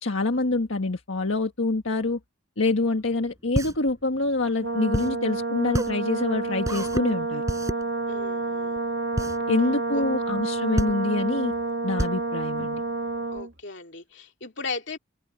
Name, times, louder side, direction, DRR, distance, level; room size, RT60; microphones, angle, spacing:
voice 1, 0.0-2.2 2.6-7.4 9.5-11.5 11.8-12.8, left 2 dB, 75° left, 1.5 m, -26 dB
sound 1, 3.1-13.4, equal, 15° right, 5.8 m, -31 dB
Brass instrument, 4.6-13.5, right 3 dB, 65° right, 3.4 m, -29 dB
voice 2, 8.1-8.8 9.9-10.0 13.3-15.0, left 3 dB, 55° left, 2.9 m, -36 dB
open air
head